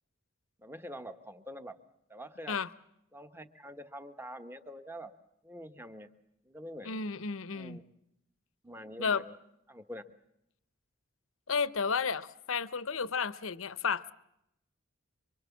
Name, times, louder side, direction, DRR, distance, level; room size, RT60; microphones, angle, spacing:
voice 1, 0.6-1.8 2.1-2.6 3.1-5.1 5.4-6.1 6.4-7.0 7.5-7.8 8.6-9.4 9.7-10.0, equal, 10° right, 9 dB, 1.2 m, -45 dB
voice 2, 6.8-7.8 9.0-9.2 11.5-14.1, left 5 dB, 75° left, 16 dB, 0.9 m, -32 dB
27.5 x 24.5 x 7.2 m, 0.82 s
head